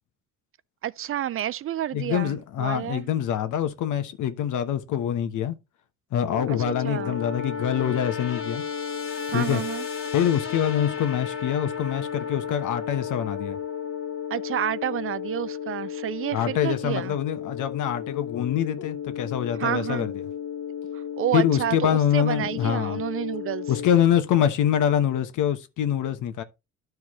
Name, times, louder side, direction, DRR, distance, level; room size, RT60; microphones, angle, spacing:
voice 1, 0.8-3.1 6.5-7.2 9.3-9.9 14.3-17.2 19.5-20.1 20.9-23.7, right 11 dB, 45° right, 0.4 m, -30 dB
voice 2, 1.9-5.6 6.1-8.6 9.3-9.6 10.1-13.6 16.3-20.1 21.3-23.0 23.7-26.4, left 10 dB, 80° left, 1.1 m, -25 dB
sound 1, 6.2-23.9, left 8 dB, 45° left, 1.4 m, -33 dB
12.0 x 4.7 x 3.0 m
cardioid pair, 90°, 30 cm